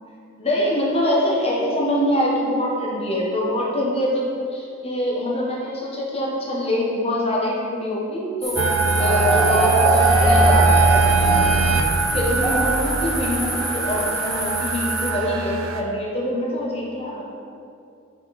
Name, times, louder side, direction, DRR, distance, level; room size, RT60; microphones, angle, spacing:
voice 1, 0.4-4.2 4.5-8.7 9.0-11.6 12.1-17.2, equal, 30° left, -4 dB, 1.2 m, -24 dB
sound 1, 8.4-15.1, equal, ahead, 0.6 m, -24 dB
sound 2, 8.6-15.8, right 4 dB, 90° right, 0.5 m, -21 dB
sound 3, 9.8-14.2, equal, 35° right, 1.1 m, -31 dB
5.9 x 5.2 x 4.2 m, 2.5 s
head